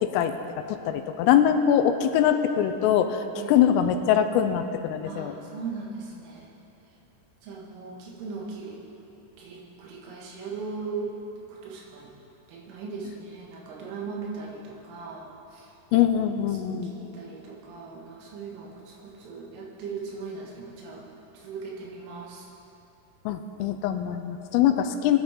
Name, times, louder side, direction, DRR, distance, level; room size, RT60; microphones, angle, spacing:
voice 1, 0.0-5.4 15.9-16.9 23.3-25.2, left 9 dB, 85° left, 8 dB, 3.2 m, -23 dB
voice 2, 5.1-6.5 7.4-8.8 9.4-11.2 11.5-12.2 12.5-15.7 16.5-21.1 21.3-22.5, right 4 dB, 75° right, -3 dB, 4.2 m, -38 dB
21.5 x 10.5 x 3.7 m, 2.9 s
omnidirectional pair, 5.9 m